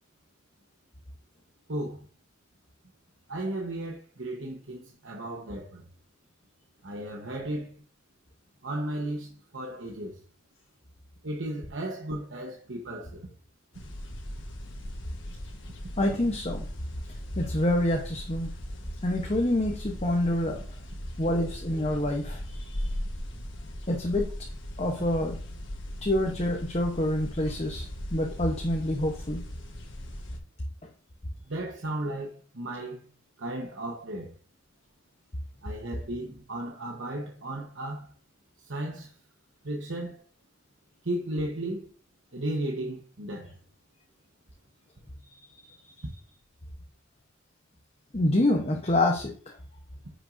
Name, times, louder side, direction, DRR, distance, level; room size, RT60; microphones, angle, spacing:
voice 1, 1.7-2.1 3.3-5.8 6.8-7.8 8.6-10.2 11.2-13.3 31.4-33.1 33.4-34.4 35.6-38.1 38.6-39.2 39.6-40.2 41.0-41.9 42.3-43.6, right 1 dB, 65° right, 1.1 m, -35 dB
sound 1, 13.7-30.4, equal, 65° left, 1.4 m, -39 dB
voice 2, 16.0-16.7 17.4-18.5 19.0-20.6 21.2-22.9 23.9-24.3 24.8-25.4 26.0-29.4 45.3-45.9 48.1-49.6, left 1 dB, 30° left, 0.9 m, -27 dB
9.8 x 6.1 x 2.6 m
head